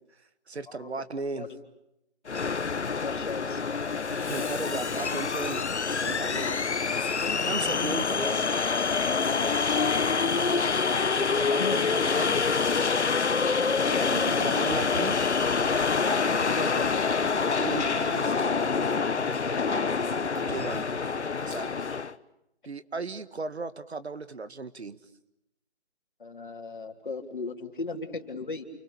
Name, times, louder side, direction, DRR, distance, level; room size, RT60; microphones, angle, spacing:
voice 1, 0.5-1.5 4.1-5.6 6.0-6.7 7.4-8.5 10.3-10.7 11.2-12.4 14.4-15.2 17.6-18.5 20.3-20.9 21.4-21.7 22.6-25.0, right 4 dB, 75° right, 13 dB, 1.9 m, -36 dB
sound 1, 2.3-22.1, left 5 dB, 85° left, 1.2 m, -26 dB
voice 2, 2.9-3.8 7.7-8.0 8.9-10.1 11.6-12.0 13.6-14.2 16.0-17.3 19.4-19.9 21.7-21.9 26.2-28.6, left 4 dB, 50° left, 4 dB, 3.5 m, -37 dB
sound 2, 14.1-21.3, right 2 dB, 25° right, 3.9 m, -43 dB
29.0 x 23.0 x 8.6 m, 0.85 s
figure-of-eight pair, 175°, 33 cm